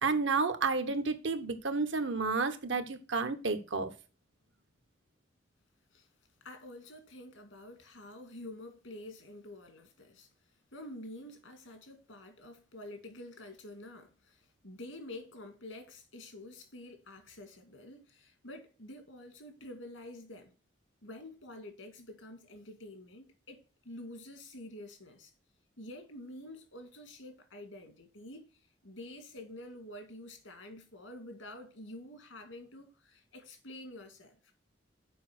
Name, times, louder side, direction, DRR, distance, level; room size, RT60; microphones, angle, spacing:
voice 1, 0.0-3.9, right 4 dB, 75° right, 1.1 m, -31 dB
voice 2, 6.4-10.3 10.7-20.5 21.0-25.3 25.8-34.4, left 1 dB, 85° left, 2.1 m, -48 dB
7.0 x 5.0 x 6.1 m
head